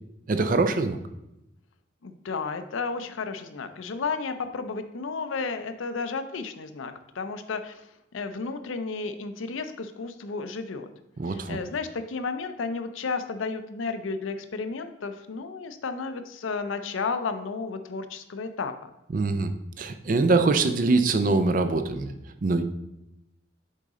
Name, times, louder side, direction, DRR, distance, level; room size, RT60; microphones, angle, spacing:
voice 1, 0.3-1.0 11.2-11.6 19.1-22.1 22.4-22.6, right 3 dB, 45° right, 9 dB, 0.4 m, -23 dB
voice 2, 2.0-10.9 11.2-18.9, left 4 dB, 85° left, 9 dB, 0.5 m, -33 dB
6.5 x 4.0 x 3.7 m, 0.87 s
head